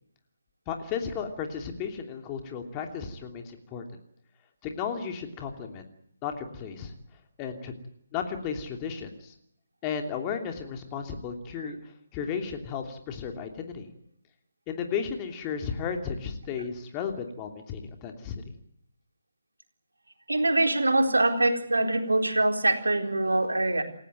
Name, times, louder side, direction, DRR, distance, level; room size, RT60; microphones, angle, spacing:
voice 1, 0.7-3.8 4.6-5.8 6.2-6.9 7.4-7.7 8.1-9.3 9.8-11.8 12.1-13.9 14.7-18.5, left 6 dB, 20° left, 4 dB, 2.9 m, -34 dB
voice 2, 20.3-23.8, right 2 dB, 75° right, 4 dB, 4.1 m, -24 dB
28.5 x 15.5 x 9.2 m, 0.70 s
figure-of-eight pair, 145°, 0 cm